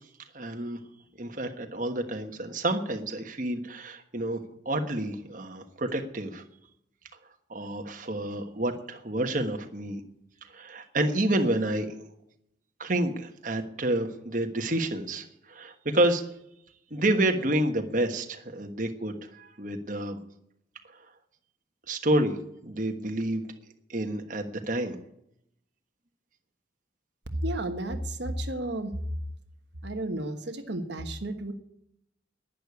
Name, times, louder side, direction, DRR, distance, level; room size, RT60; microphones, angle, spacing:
voice 1, 0.3-0.8 1.2-4.4 4.6-6.4 7.5-10.0 10.5-12.0 12.8-16.2 16.9-20.2 21.9-22.4 22.6-23.5 23.9-25.0, right 1 dB, 40° right, 5 dB, 1.3 m, -29 dB
voice 2, 27.4-28.9 29.8-31.5, right 1 dB, 65° right, 6 dB, 1.3 m, -32 dB
11.5 x 10.5 x 8.3 m, 0.77 s
head